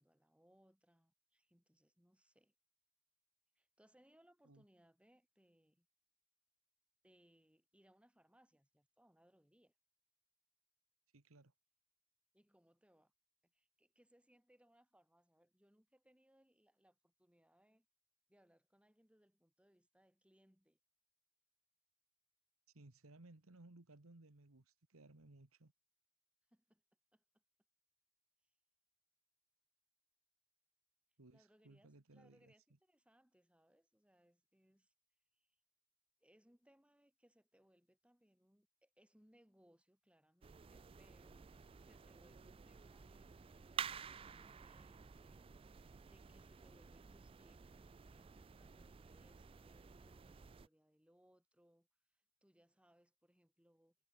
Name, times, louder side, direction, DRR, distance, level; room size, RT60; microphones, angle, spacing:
voice 1, 0.0-2.5 3.5-5.9 7.0-9.7 12.3-13.1 13.4-17.9 18.3-20.8 26.5-26.8 27.1-27.4 31.3-34.9 35.3-35.6 36.2-41.5 41.8-53.9, equal, 5° right, 3.4 m, -72 dB
voice 2, 11.1-11.5 22.7-25.7 31.2-32.5, right 2 dB, 80° right, 1.5 m, -62 dB
sound 1, 40.4-50.7, right 7 dB, 25° right, 0.3 m, -52 dB
head